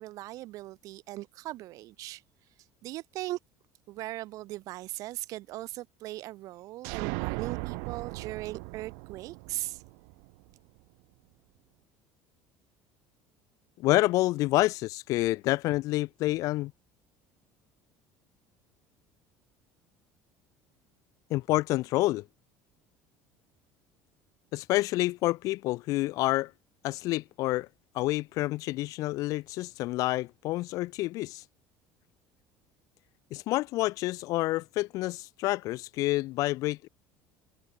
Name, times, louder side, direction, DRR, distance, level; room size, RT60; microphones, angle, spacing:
voice 1, 0.0-2.2 2.8-3.4 3.9-9.8, right 17 dB, 60° right, 2.7 m, -39 dB
sound 1, 6.8-10.5, right 40 dB or more, 85° right, 1.1 m, -37 dB
voice 2, 13.8-16.7 21.3-22.3 24.5-26.5 26.8-27.7 27.9-31.4 33.3-36.9, left 18 dB, 60° left, 0.7 m, -28 dB
cardioid pair, 135°, 7 cm